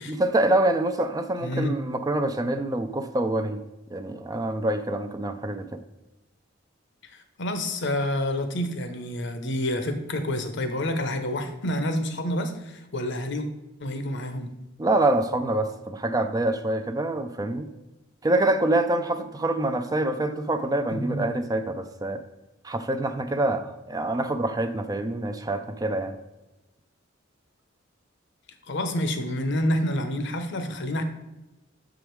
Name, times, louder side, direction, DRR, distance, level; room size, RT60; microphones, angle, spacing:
voice 1, 0.1-3.6 3.9-5.8 14.8-17.7 18.2-22.2 22.6-26.2, right 2 dB, 20° right, 7 dB, 0.4 m, -26 dB
voice 2, 1.4-1.7 7.0-13.5 13.8-14.5 20.9-21.3 28.7-31.0, left 1 dB, 65° left, 8 dB, 0.9 m, -28 dB
7.1 x 5.0 x 4.6 m, 1.0 s
head